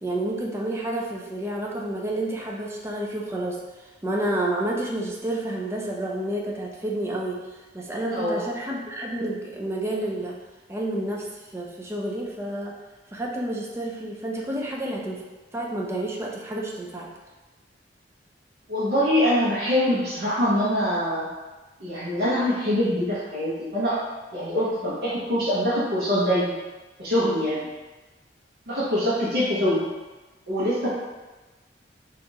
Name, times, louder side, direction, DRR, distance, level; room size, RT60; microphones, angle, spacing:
voice 1, 0.0-3.6 4.0-7.4 7.7-10.4 10.7-11.3 11.5-12.7 13.1-15.2 15.5-17.1, right 1 dB, 15° right, -2 dB, 0.5 m, -29 dB
voice 2, 8.1-8.4 18.7-21.3 21.8-24.0 24.3-26.5 27.0-27.7 28.7-29.8 30.5-30.9, equal, 65° right, -11 dB, 0.9 m, -24 dB
4.4 x 2.5 x 2.8 m, 1.2 s
head